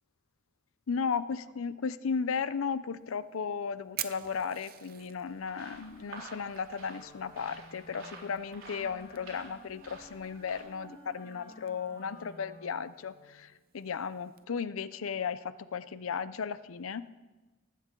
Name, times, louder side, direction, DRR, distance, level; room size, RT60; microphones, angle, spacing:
voice 1, 0.9-17.1, left 6 dB, 90° left, 15 dB, 0.5 m, -35 dB
Fire, 2.9-14.4, right 12 dB, 45° right, 0.6 m, -49 dB
sound 1, 5.3-10.6, right 3 dB, 75° right, 3.9 m, -51 dB
Wind instrument woodwind instrument, 6.7-13.4, left 1 dB, 50° left, 6.0 m, -54 dB
18.0 x 16.0 x 3.8 m, 1.2 s
head